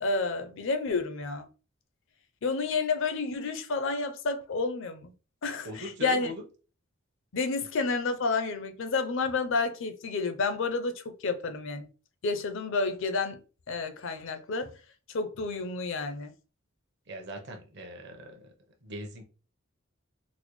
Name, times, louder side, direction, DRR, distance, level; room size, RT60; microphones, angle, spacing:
voice 1, 0.0-1.5 2.4-5.1 5.4-6.3 7.3-11.9 12.2-14.8 15.1-16.3, left 4 dB, 60° left, 0.5 m, -30 dB
voice 2, 5.6-6.4 17.1-18.5 18.8-19.2, equal, 55° right, 0.8 m, -40 dB
3.9 x 2.0 x 3.0 m
head